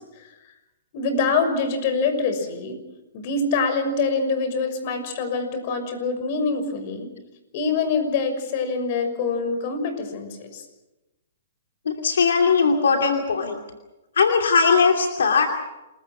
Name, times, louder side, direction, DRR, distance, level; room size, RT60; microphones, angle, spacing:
voice 1, 0.9-2.8 3.1-7.1 7.5-10.6, left 4 dB, 45° left, 8 dB, 6.2 m, -25 dB
voice 2, 12.0-13.6 14.2-15.5, left 5 dB, 85° left, 3 dB, 2.8 m, -19 dB
28.0 x 22.5 x 6.2 m, 1.0 s
hypercardioid pair, 140°, 0 cm